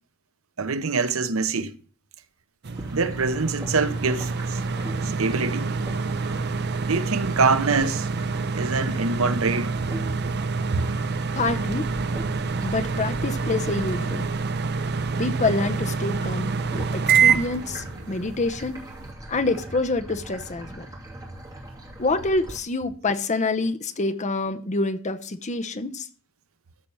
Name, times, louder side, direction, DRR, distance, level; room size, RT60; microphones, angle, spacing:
voice 1, 0.6-1.7 2.9-4.6 5.0-5.7 6.8-8.1 8.6-9.8 10.7-10.9, right 4 dB, 80° right, 0.9 m, -24 dB
sound 1, 2.6-19.1, right 5 dB, 50° right, 0.7 m, -27 dB
sound 2, 2.7-22.6, right 1 dB, 15° right, 2.8 m, -40 dB
voice 2, 11.3-11.8 12.6-14.3 15.2-16.5 16.7-18.8 19.3-20.9 22.0-26.1, left 3 dB, 35° left, 0.9 m, -26 dB
13.5 x 4.6 x 7.1 m
head